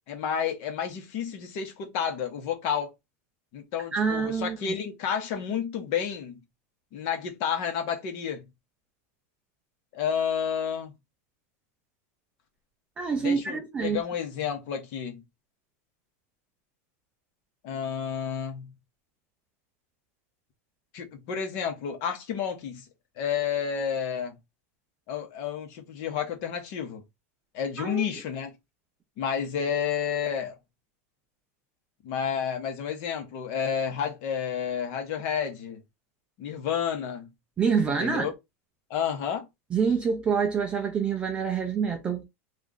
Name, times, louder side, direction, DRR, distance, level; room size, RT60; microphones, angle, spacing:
voice 1, 0.1-2.9 3.5-6.4 6.9-8.5 9.9-10.9 13.2-15.2 17.6-18.7 20.9-22.8 23.2-24.4 25.1-27.0 27.5-28.5 29.2-30.5 32.0-35.8 36.4-37.3 38.0-38.3 38.9-39.5, left 7 dB, 40° left, 1.0 m, -30 dB
voice 2, 3.9-4.6 13.0-14.0 27.8-28.0 37.6-38.3 39.7-42.2, right 6 dB, 15° right, 0.4 m, -26 dB
3.0 x 2.5 x 3.7 m
supercardioid pair, 180°, 8 cm